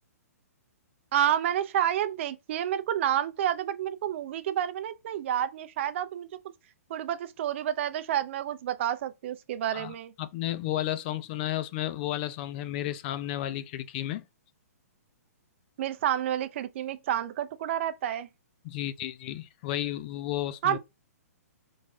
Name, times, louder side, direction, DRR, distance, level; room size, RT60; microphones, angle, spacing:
voice 1, 1.1-6.3 6.9-10.1 15.8-18.3 20.6-20.8, right 10 dB, 50° right, 0.4 m, -29 dB
voice 2, 9.7-14.2 18.6-20.8, left 13 dB, 35° left, 0.4 m, -33 dB
4.0 x 3.2 x 2.2 m
hypercardioid pair, 140°, 9 cm